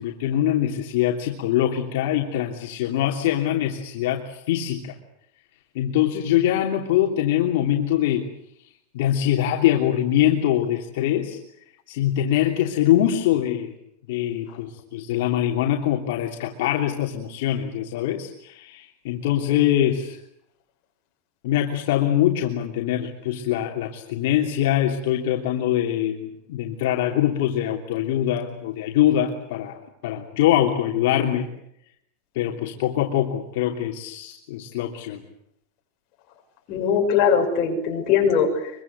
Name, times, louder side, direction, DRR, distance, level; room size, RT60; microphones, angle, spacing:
voice 1, 0.0-4.9 5.7-8.2 8.9-11.4 11.9-13.7 14.1-20.2 21.4-29.8 30.0-31.5 32.3-35.2, left 11 dB, 65° left, 0 dB, 3.1 m, -23 dB
voice 2, 36.7-38.7, left 7 dB, 35° left, 1 dB, 6.7 m, -21 dB
25.0 x 24.0 x 8.3 m, 0.73 s
supercardioid pair, 165°, 0 cm